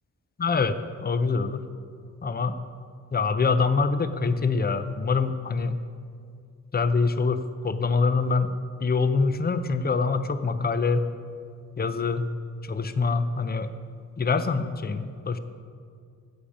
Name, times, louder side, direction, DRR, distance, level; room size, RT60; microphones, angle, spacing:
voice 1, 0.4-0.7 1.0-1.7 2.2-2.6 3.1-5.8 6.7-11.1 11.8-12.3 12.6-13.7 14.2-15.4, left 4 dB, 30° left, 11 dB, 0.6 m, -25 dB
17.0 x 8.6 x 5.0 m, 2.3 s
wide cardioid pair, 130°, 31 cm